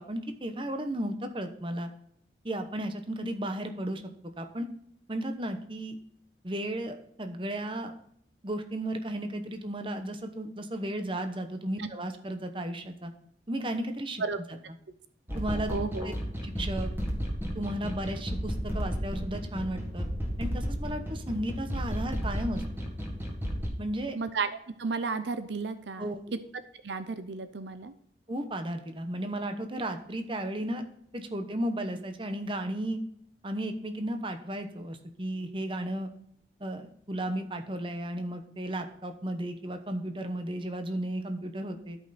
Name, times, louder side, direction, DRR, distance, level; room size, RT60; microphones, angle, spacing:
voice 1, 0.0-1.9 2.4-4.0 4.4-4.7 5.1-6.0 6.4-7.9 8.4-13.1 13.5-14.2 15.3-15.8 16.0-16.1 16.4-16.9 17.5-20.1 20.4-22.6 23.8-24.2 26.0-26.4 28.3-30.9 31.1-33.0 33.4-36.1 36.6-42.0, right 1 dB, 30° right, 6 dB, 0.9 m, -34 dB
sound 1, 15.3-23.7, equal, 10° right, 1.9 m, -33 dB
voice 2, 15.7-16.1 24.2-26.1 26.8-27.9, right 4 dB, 75° right, 11 dB, 0.6 m, -33 dB
13.0 x 5.5 x 4.2 m, 0.68 s
head